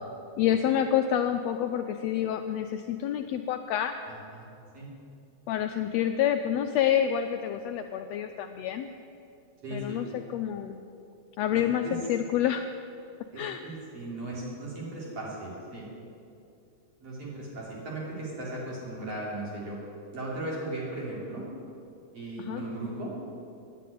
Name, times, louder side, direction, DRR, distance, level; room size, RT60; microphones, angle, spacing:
voice 1, 0.4-4.0 5.5-8.9 9.7-10.8 11.4-12.7 13.4-13.6 22.4-22.6, left 10 dB, 80° left, 6 dB, 1.5 m, -28 dB
voice 2, 4.1-4.5 4.7-4.9 9.6-10.0 11.5-12.0 13.3-15.9 17.0-19.8 20.1-21.4 22.1-23.1, right 2 dB, 55° right, -5 dB, 4.3 m, -37 dB
10.0 x 8.5 x 9.9 m, 2.6 s
omnidirectional pair, 3.4 m